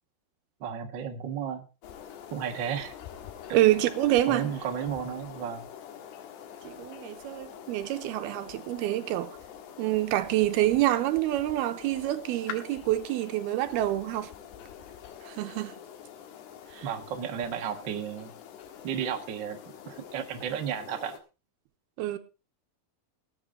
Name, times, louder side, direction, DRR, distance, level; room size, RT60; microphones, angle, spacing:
voice 1, 0.6-1.6 2.3-2.9 4.3-5.7 16.8-18.3 18.8-19.6 19.9-21.2, right 8 dB, 60° right, 1.2 m, -33 dB
sound 1, 1.8-21.2, left 9 dB, 90° left, 3.6 m, -45 dB
voice 2, 3.5-4.5 6.6-9.4 9.8-14.3 15.2-15.7 16.7-16.9 22.0-22.2, right 14 dB, 80° right, 2.8 m, -27 dB
19.5 x 8.3 x 3.7 m
omnidirectional pair, 4.6 m